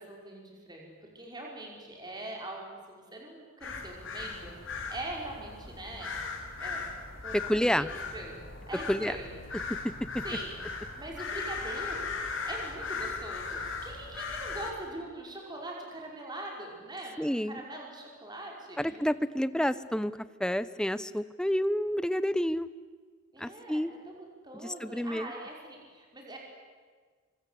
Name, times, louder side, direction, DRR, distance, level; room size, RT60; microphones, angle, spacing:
voice 1, 0.0-6.3 6.6-6.9 7.2-7.5 7.8-9.3 10.2-10.5 10.9-12.1 12.5-18.9 23.3-26.4, right 1 dB, 20° right, 0 dB, 5.4 m, -42 dB
sound 1, 3.6-14.7, left 4 dB, 80° left, 4.1 m, -38 dB
voice 2, 7.3-7.9 8.9-9.1 17.2-17.6 18.8-20.1 20.4-22.7 23.4-23.9 24.6-25.3, equal, 5° left, 15 dB, 0.7 m, -29 dB
25.5 x 25.0 x 8.5 m, 1.5 s
head